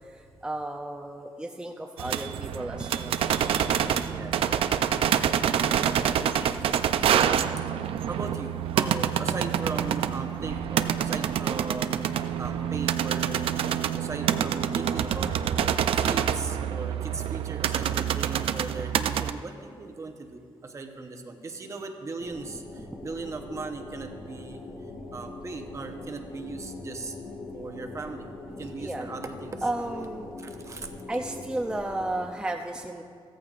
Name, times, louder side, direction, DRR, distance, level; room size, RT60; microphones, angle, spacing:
voice 1, 0.0-3.2 28.8-29.1 29.6-30.3 31.1-33.0, right 1 dB, 10° right, 2 dB, 0.5 m, -33 dB
sound 1, 2.0-19.3, right 9 dB, 90° right, 0.4 m, -26 dB
voice 2, 3.8-5.2 5.5-6.7 7.0-7.6 8.1-13.5 14.0-24.6 25.1-27.2 27.5-28.3 28.6-29.6 30.4-30.9, right 3 dB, 35° right, 5 dB, 0.8 m, -38 dB
sound 2, 22.2-32.2, left 2 dB, 70° left, 1.6 m, -42 dB
15.5 x 14.5 x 2.5 m, 2.3 s
wide cardioid pair, 145°, 9 cm